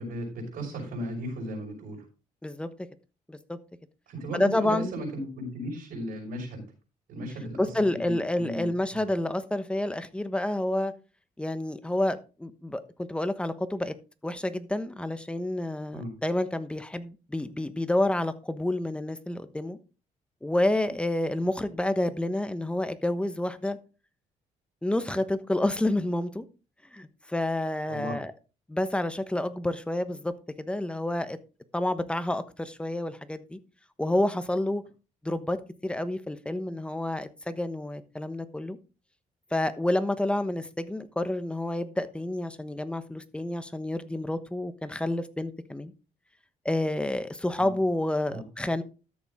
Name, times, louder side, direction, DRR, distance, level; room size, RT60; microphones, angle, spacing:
voice 1, 0.0-2.0 4.1-6.7 7.1-7.7 8.0-8.7 15.9-16.1 27.9-28.2 47.6-47.7 48.3-48.4, right 1 dB, 85° right, 5.2 m, -35 dB
voice 2, 4.3-4.9 7.6-10.9 11.4-13.9 14.2-19.8 20.4-23.8 24.8-26.4 26.9-28.3 28.7-31.4 31.7-33.6 34.0-34.8 35.2-35.6 35.8-38.8 39.5-45.9 46.6-48.8, left 1 dB, 5° left, 1.1 m, -29 dB
13.0 x 7.0 x 3.7 m
cardioid pair, 105°, 14 cm